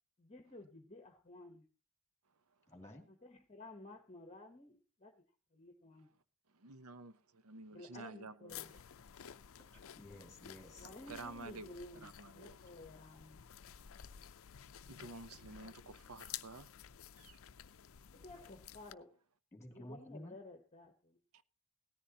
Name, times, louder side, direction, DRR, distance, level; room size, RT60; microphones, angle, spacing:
voice 1, 0.2-1.7 3.1-5.2 5.5-6.1 7.7-8.9 10.8-13.4 18.1-19.2 19.7-21.2, left 2 dB, 30° left, 1.1 m, -54 dB
voice 2, 2.7-3.1 9.7-10.9 19.5-20.4, left 1 dB, 10° left, 2.4 m, -53 dB
voice 3, 6.5-8.5 10.8-11.8 12.0-12.6 14.9-16.7 17.2-17.4 21.3-21.4, right 3 dB, 75° right, 0.8 m, -51 dB
sound 1, 8.5-18.9, left 9 dB, 65° left, 0.5 m, -53 dB
17.5 x 14.0 x 2.9 m
head